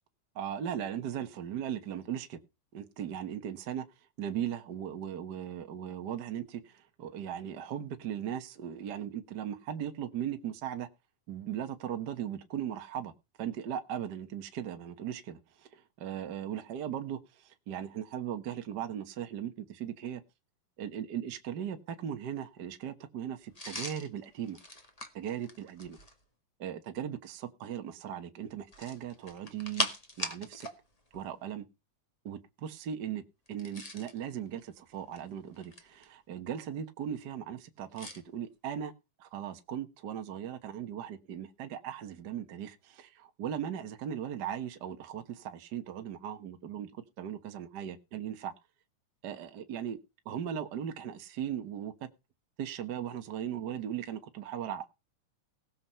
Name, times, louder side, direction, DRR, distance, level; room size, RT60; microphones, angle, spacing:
voice 1, 0.3-2.4 2.7-3.8 4.2-10.9 11.3-13.1 13.4-20.2 20.8-24.6 25.1-26.0 26.6-29.9 30.2-30.7 31.1-31.6 32.2-33.2 33.5-38.9 39.2-46.9 47.2-48.5 49.2-50.0 50.2-51.9 52.6-54.9, right 9 dB, 75° right, 0.9 m, -38 dB
sound 1, 23.5-26.2 28.6-30.8 31.1-31.2 33.5-34.2 34.9-36.0 37.9-38.2, left 1 dB, 20° left, 1.1 m, -39 dB
17.5 x 7.4 x 5.6 m
omnidirectional pair, 3.7 m